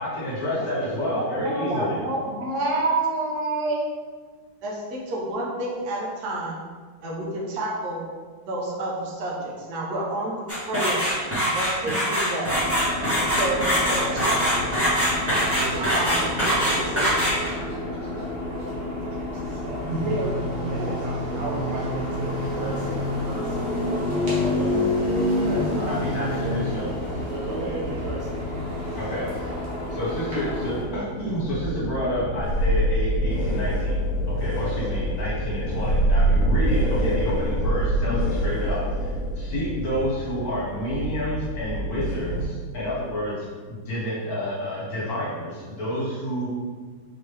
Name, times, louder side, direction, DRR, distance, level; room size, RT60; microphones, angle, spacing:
voice 1, 0.0-2.0 25.8-26.9 29.0-29.5 29.9-46.5, equal, 50° left, -7 dB, 1.6 m, -29 dB
voice 2, 0.5-3.9 4.6-6.6 7.0-8.1 8.5-12.5 13.4-14.8 15.8-16.2 19.9-21.0, right 2 dB, 60° right, -3 dB, 1.2 m, -29 dB
sound 1, 10.5-17.6, equal, 10° right, 0.9 m, -23 dB
sound 2, 12.4-30.8, left 1 dB, 40° right, 1.1 m, -29 dB
voice 3, 15.5-20.2 20.6-24.7 25.1-29.1, right 2 dB, 75° right, -3 dB, 0.5 m, -37 dB
sound 3, 30.7-42.5, right 1 dB, 80° left, 1.5 m, -25 dB
4.5 x 3.0 x 3.3 m, 1.5 s
omnidirectional pair, 2.2 m